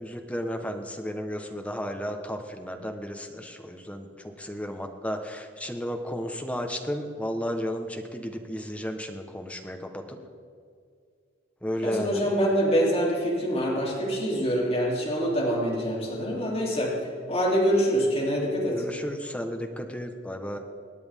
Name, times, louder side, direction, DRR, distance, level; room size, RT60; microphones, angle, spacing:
voice 1, 0.0-10.2 11.6-12.3 18.7-20.6, equal, 5° left, 4 dB, 1.1 m, -33 dB
voice 2, 11.8-16.9 17.3-18.8, equal, 30° left, -5 dB, 3.2 m, -25 dB
26.5 x 9.6 x 3.6 m, 2.3 s
head